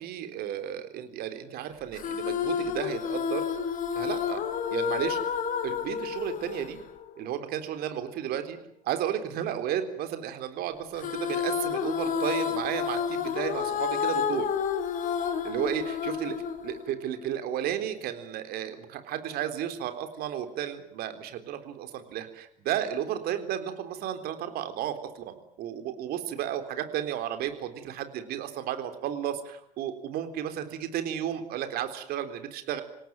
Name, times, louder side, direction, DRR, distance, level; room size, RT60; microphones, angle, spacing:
voice 1, 0.0-3.4 3.9-4.4 4.7-5.2 5.6-6.8 7.2-8.6 8.8-14.5 15.4-16.4 16.6-32.8, right 10 dB, 50° right, 8 dB, 3.8 m, -33 dB
sound 1, 1.9-7.5 11.0-17.4, left 7 dB, 45° left, 2.9 m, -30 dB
27.5 x 18.0 x 9.3 m, 0.72 s
hypercardioid pair, 70°, 20 cm